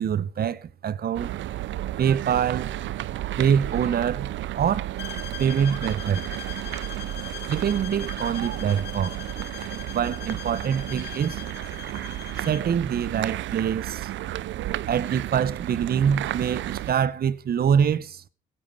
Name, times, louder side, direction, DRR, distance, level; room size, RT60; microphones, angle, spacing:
voice 1, 0.0-1.4 2.0-2.8 3.4-4.9 5.4-6.2 7.5-9.2 9.9-11.4 12.4-14.1 14.9-18.2, right 8 dB, 50° right, 0.9 m, -25 dB
sound 1, 1.1-16.9, right 14 dB, 70° right, 0.6 m, -32 dB
sound 2, 5.0-12.7, left 10 dB, 60° left, 1.9 m, -41 dB
17.0 x 8.7 x 5.5 m
cardioid pair, 90°, 20 cm